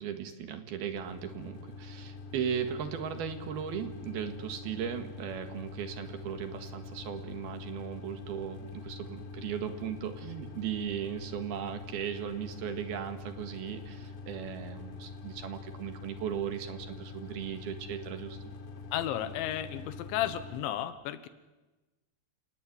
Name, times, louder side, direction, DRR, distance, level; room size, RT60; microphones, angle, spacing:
voice 1, 0.0-18.4, right 8 dB, 65° right, 8 dB, 3.3 m, -37 dB
sound 1, 0.9-20.6, left 4 dB, 75° left, 4.5 m, -45 dB
voice 2, 18.9-21.3, left 12 dB, 90° left, 13 dB, 3.6 m, -33 dB
28.5 x 18.5 x 9.6 m, 1.2 s
omnidirectional pair, 5.1 m